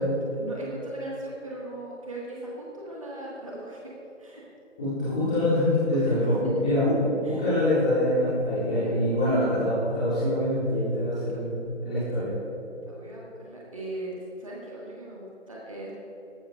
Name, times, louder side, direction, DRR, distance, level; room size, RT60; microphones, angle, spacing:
voice 1, 0.3-3.9 4.2-4.4 5.9-6.3 7.2-7.4 8.8-8.9 11.3-11.4 12.7-15.9, right 2 dB, 25° right, -5 dB, 1.6 m, -39 dB
voice 2, 4.8-6.9 7.2-12.3, left 1 dB, 5° left, -13 dB, 1.9 m, -25 dB
17.0 x 14.0 x 2.4 m, 2.8 s
figure-of-eight pair, 165°, 36 cm